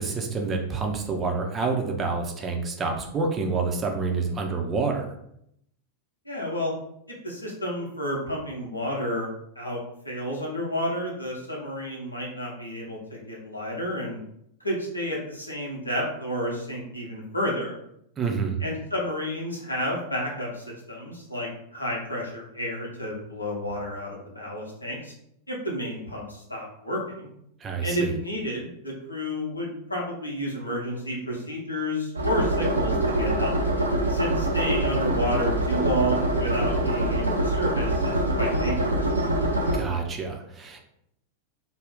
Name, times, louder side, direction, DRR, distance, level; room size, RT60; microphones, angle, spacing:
voice 1, 0.0-5.1 18.2-18.6 27.6-28.2 39.7-40.8, right 4 dB, 25° right, 2 dB, 0.5 m, -28 dB
voice 2, 6.3-6.7 7.2-9.3 9.6-9.8 10.0-14.2 14.6-17.8 18.6-25.1 25.5-27.3 27.8-33.5 34.1-38.9, equal, 85° left, -2 dB, 0.8 m, -31 dB
sound 1, 32.2-39.8, right 1 dB, 80° right, 0.5 m, -24 dB
2.5 x 2.2 x 3.5 m, 0.74 s
figure-of-eight pair, 90°, 0 cm